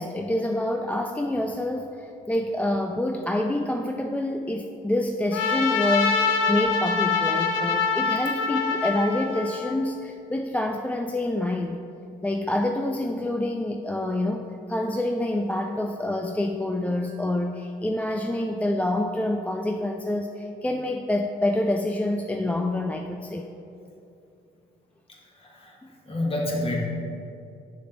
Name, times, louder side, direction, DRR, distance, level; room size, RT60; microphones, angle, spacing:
voice 1, 0.0-11.8 12.2-23.5, left 1 dB, 5° left, 3 dB, 0.3 m, -27 dB
Trumpet, 5.3-9.7, left 5 dB, 85° left, 0.8 m, -25 dB
voice 2, 25.1-26.9, left 1 dB, 30° left, -3 dB, 1.7 m, -29 dB
6.7 x 6.0 x 4.0 m, 2.7 s
cardioid pair, 90°, 20 cm